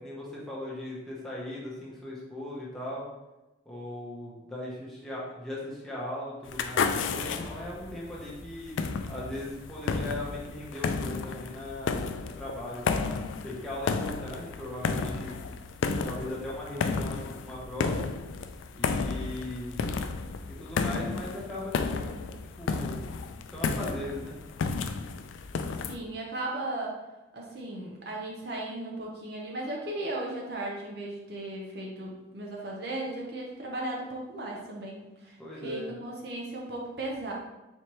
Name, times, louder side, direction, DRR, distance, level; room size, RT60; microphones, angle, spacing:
voice 1, 0.0-3.1 3.6-8.8 9.1-13.0 13.4-15.4 16.0-18.1 18.7-20.0 20.5-22.2 22.6-23.0 23.5-24.4 35.4-35.9, left 1 dB, 5° left, -7 dB, 0.9 m, -38 dB
sound 1, 6.5-25.9, left 5 dB, 80° left, 0.3 m, -32 dB
voice 2, 25.9-27.0 27.3-35.4 35.6-37.3, right 2 dB, 60° right, -2 dB, 0.8 m, -36 dB
4.3 x 3.3 x 3.0 m, 1.0 s
head